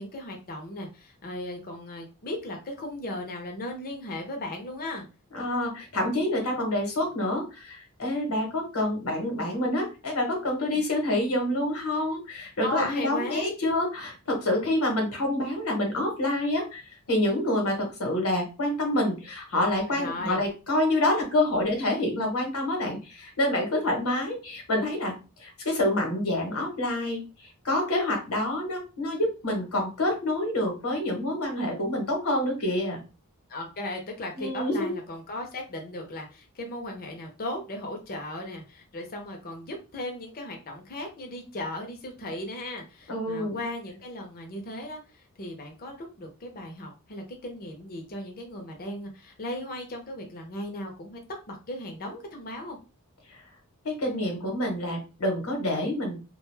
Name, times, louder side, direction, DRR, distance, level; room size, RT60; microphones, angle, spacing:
voice 1, 0.0-5.0 10.7-10.8 12.6-13.5 19.9-20.4 33.5-52.8, left 1 dB, 45° left, 2 dB, 0.6 m, -37 dB
voice 2, 5.3-27.2 27.6-33.0 34.4-35.0 43.1-43.6 53.8-56.2, left 1 dB, 70° left, 2 dB, 1.0 m, -27 dB
2.4 x 2.2 x 3.2 m, 0.31 s
head